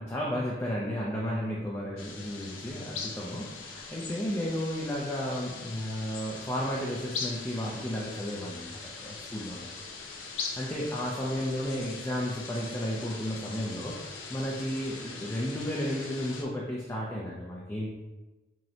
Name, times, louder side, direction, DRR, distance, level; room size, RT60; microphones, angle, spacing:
voice 1, 0.0-9.9 10.3-17.9, equal, 15° left, -4 dB, 0.4 m, -33 dB
sound 1, 2.0-16.4, left 4 dB, 85° left, 0.6 m, -41 dB
5.4 x 2.1 x 2.7 m, 1.1 s
head